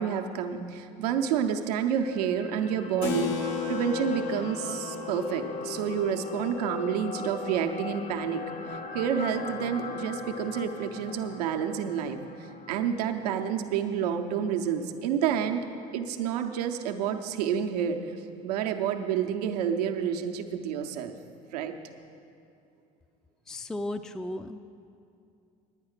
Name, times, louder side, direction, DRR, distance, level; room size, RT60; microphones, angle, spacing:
voice 1, 0.0-8.4 8.7-15.6 15.9-18.0 18.4-21.1 21.5-21.7, right 8 dB, 90° right, 5 dB, 0.7 m, -29 dB
sound 1, 1.9-14.2 14.6-14.7, left 4 dB, 40° left, 1.0 m, -39 dB
Keyboard (musical), 3.0-9.0, left 5 dB, 85° left, 1.0 m, -37 dB
voice 2, 23.5-24.6, left 1 dB, 5° left, 9 dB, 0.4 m, -35 dB
9.8 x 9.4 x 6.5 m, 2.5 s
supercardioid pair, 80°, 20 cm